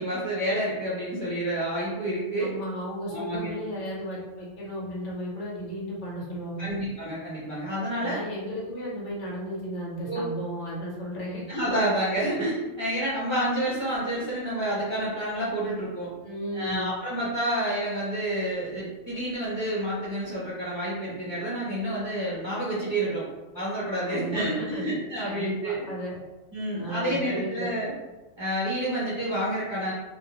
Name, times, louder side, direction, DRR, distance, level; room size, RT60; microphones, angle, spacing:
voice 1, 0.0-2.5 3.1-3.5 6.6-8.2 10.1-10.2 11.5-16.1 16.5-23.3 23.5-25.8 26.5-27.9 28.4-29.9, right 1 dB, 30° right, -10 dB, 0.5 m, -29 dB
voice 2, 2.4-6.7 8.0-11.4 16.2-16.9 24.0-24.8 25.2-26.2 26.7-27.7, equal, 70° left, -4 dB, 1.1 m, -34 dB
2.4 x 2.2 x 2.8 m, 1.2 s
omnidirectional pair, 1.3 m